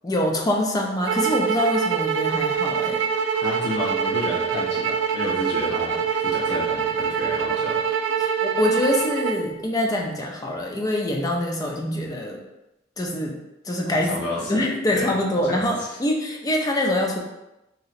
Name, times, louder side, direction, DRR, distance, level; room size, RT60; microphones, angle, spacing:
voice 1, 0.0-3.0 8.2-12.4 13.0-13.4 13.6-17.2, left 1 dB, 20° left, 0 dB, 0.4 m, -25 dB
sound 1, 1.1-9.4, right 6 dB, 80° right, 0.3 m, -24 dB
voice 2, 3.4-7.8 13.8-14.6 14.9-15.6, left 1 dB, 65° left, -7 dB, 0.9 m, -31 dB
2.9 x 2.8 x 2.5 m, 0.92 s
head